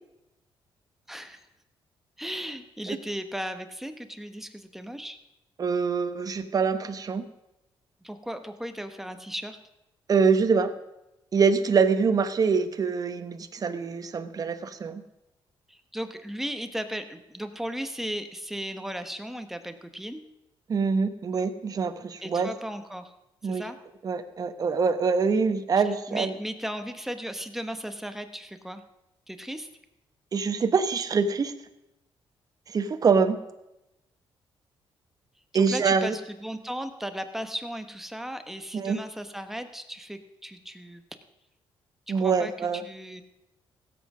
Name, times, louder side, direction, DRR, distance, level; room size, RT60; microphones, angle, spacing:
voice 1, 1.1-1.4 2.2-5.2 8.0-9.6 15.7-20.2 22.2-23.1 23.4-23.8 26.1-28.8 29.3-29.7 35.5-41.0 42.1-43.2, equal, 5° right, 8 dB, 1.1 m, -36 dB
voice 2, 5.6-7.3 10.1-10.7 11.3-15.0 20.7-22.5 23.4-23.6 24.0-26.3 30.3-31.5 32.7-33.4 35.5-36.2 38.7-39.0 42.1-42.8, right 5 dB, 40° right, 9 dB, 1.0 m, -24 dB
16.0 x 7.8 x 6.2 m, 0.91 s
cardioid pair, 105°, 9 cm